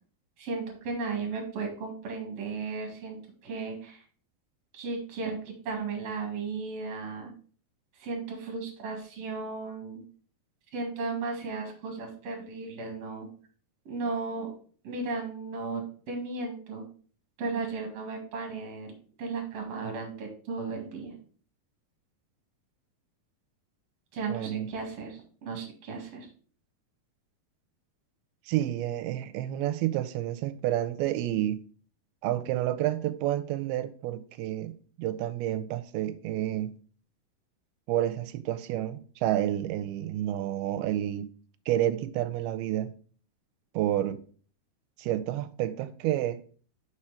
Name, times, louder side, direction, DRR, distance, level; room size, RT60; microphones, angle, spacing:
voice 1, 0.4-4.0 4.7-5.4 5.6-7.3 8.0-10.0 10.7-13.3 13.9-14.5 14.8-16.8 17.4-18.9 19.2-21.2 24.1-26.3, right 4 dB, 50° right, 2.5 m, -35 dB
voice 2, 24.3-24.7 28.5-31.6 32.2-36.7 37.9-41.3 41.7-42.9 43.7-44.2 45.0-46.4, right 13 dB, 85° right, 2.5 m, -29 dB
6.5 x 4.4 x 4.9 m
omnidirectional pair, 4.4 m